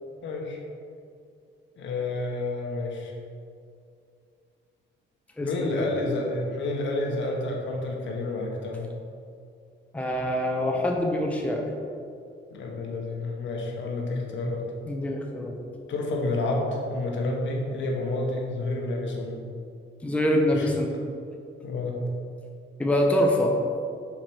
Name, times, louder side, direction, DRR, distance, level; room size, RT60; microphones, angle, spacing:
voice 1, 0.2-0.6 1.8-3.1 5.4-8.9 12.5-14.7 15.9-19.4 20.5-20.7 21.6-22.0, left 2 dB, 70° left, 0 dB, 1.2 m, -29 dB
voice 2, 5.4-5.8 9.9-11.6 14.9-15.5 20.0-21.0 22.8-23.5, left 1 dB, 5° left, 0 dB, 0.9 m, -25 dB
5.9 x 4.8 x 4.5 m, 2.4 s
cardioid pair, 90°, 20 cm